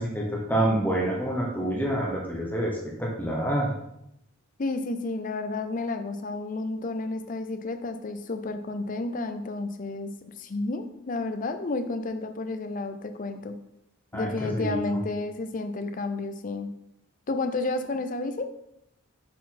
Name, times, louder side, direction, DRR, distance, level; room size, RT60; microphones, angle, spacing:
voice 1, 0.0-3.7 14.1-15.0, right 1 dB, 10° left, -3 dB, 0.9 m, -27 dB
voice 2, 4.6-13.6 14.1-16.7 17.3-18.5, left 2 dB, 40° left, 8 dB, 0.5 m, -31 dB
6.2 x 4.1 x 4.2 m, 0.80 s
head